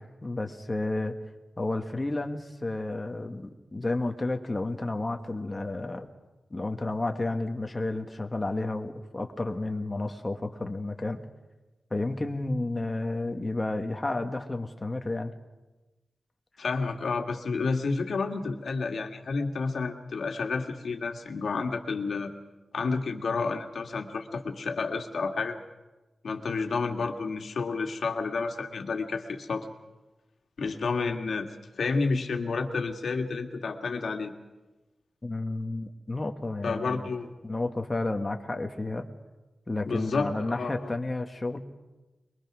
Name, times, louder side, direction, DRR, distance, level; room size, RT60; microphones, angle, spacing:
voice 1, 0.2-1.1 1.6-6.1 6.5-11.2 11.9-15.3 35.2-37.1 37.4-39.1 39.7-41.6, left 2 dB, 20° left, 4 dB, 1.5 m, -31 dB
voice 2, 16.6-22.3 22.7-25.6 26.2-29.7 30.6-31.5 31.8-34.3 36.6-37.3 39.8-40.9, left 4 dB, 75° left, 5 dB, 1.9 m, -30 dB
23.5 x 22.5 x 6.2 m, 1.1 s
wide cardioid pair, 145°, 0 cm